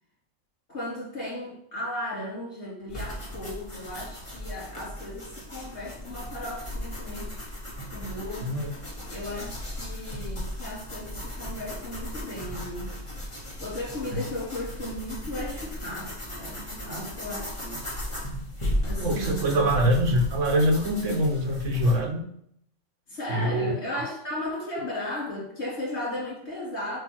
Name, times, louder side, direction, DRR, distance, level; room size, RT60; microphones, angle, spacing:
voice 1, 0.7-7.3 7.9-8.5 9.1-12.9 13.6-17.8 18.8-19.7 23.1-27.0, left 1 dB, 55° left, -6 dB, 3.5 m, -35 dB
sound 1, 2.9-22.0, equal, 25° left, 1.7 m, -36 dB
voice 2, 19.0-22.2 23.3-24.0, equal, 70° right, 5 dB, 1.3 m, -24 dB
8.2 x 2.8 x 6.1 m, 0.68 s
omnidirectional pair, 1.3 m